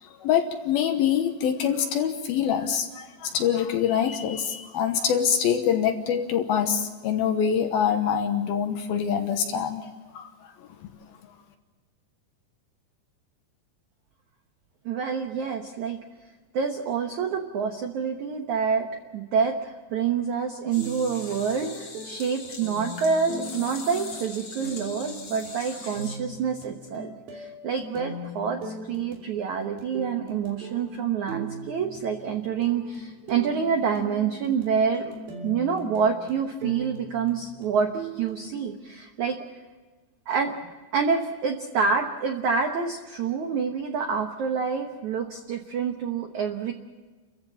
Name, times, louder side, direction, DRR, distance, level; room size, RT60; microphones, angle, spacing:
voice 1, 0.0-10.3 10.8-10.9, left 8 dB, 70° left, 6 dB, 2.6 m, -25 dB
voice 2, 14.8-16.0 16.5-18.9 19.1-35.1 35.4-39.4 40.3-40.5 40.9-46.7, right 6 dB, 80° right, 5 dB, 1.7 m, -27 dB
sound 1, 20.7-26.2, left 3 dB, 30° left, 3.5 m, -41 dB
sound 2, 20.8-38.7, right 1 dB, 55° right, 4.4 m, -40 dB
30.0 x 15.0 x 7.2 m, 1.3 s
omnidirectional pair, 5.3 m